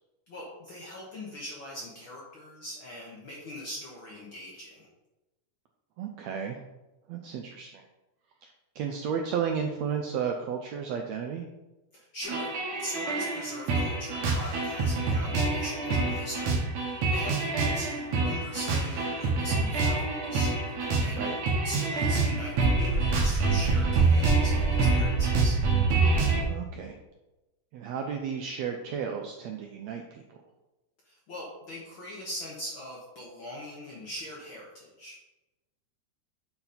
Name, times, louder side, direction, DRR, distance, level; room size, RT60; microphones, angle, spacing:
voice 1, 0.3-4.9 11.9-12.5 12.8-21.3 21.6-25.6 31.0-35.2, equal, 60° left, -3 dB, 1.3 m, -41 dB
voice 2, 6.0-6.6 7.1-7.8 8.4-11.5 21.1-21.4 26.3-27.0 27.7-30.4, right 7 dB, 85° right, 3 dB, 1.5 m, -33 dB
sound 1, 12.2-26.4, right 3 dB, 60° right, 2.3 m, -26 dB
8.8 x 4.0 x 4.2 m, 1.0 s
omnidirectional pair, 3.7 m